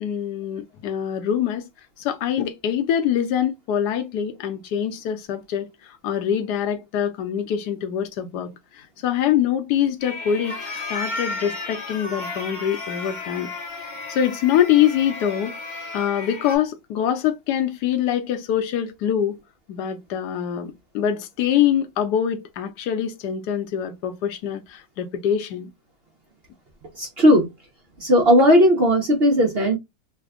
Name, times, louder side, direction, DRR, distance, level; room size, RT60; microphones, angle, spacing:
voice 1, 0.0-1.7 2.0-10.5 10.9-13.5 14.1-15.5 15.9-19.3 19.7-25.7, left 9 dB, 75° left, 1.1 m, -24 dB
sound 1, 10.0-16.6, left 3 dB, 50° left, 0.5 m, -33 dB
voice 2, 27.0-27.5 28.0-29.8, equal, 60° right, 0.6 m, -16 dB
3.3 x 2.1 x 3.4 m
omnidirectional pair, 1.9 m